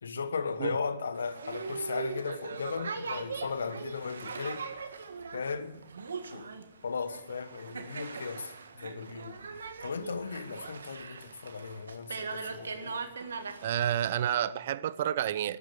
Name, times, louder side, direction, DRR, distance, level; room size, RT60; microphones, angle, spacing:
voice 1, 0.0-4.7 5.3-5.8 6.3-6.5 6.8-9.4 9.8-13.0, left 5 dB, 80° left, 1.3 m, -36 dB
Boat Water vehicle, 1.1-14.3, right 5 dB, 80° right, 1.7 m, -40 dB
voice 2, 13.6-15.6, right 10 dB, 55° right, 0.6 m, -29 dB
13.0 x 9.0 x 9.8 m
hypercardioid pair, 130°, 0 cm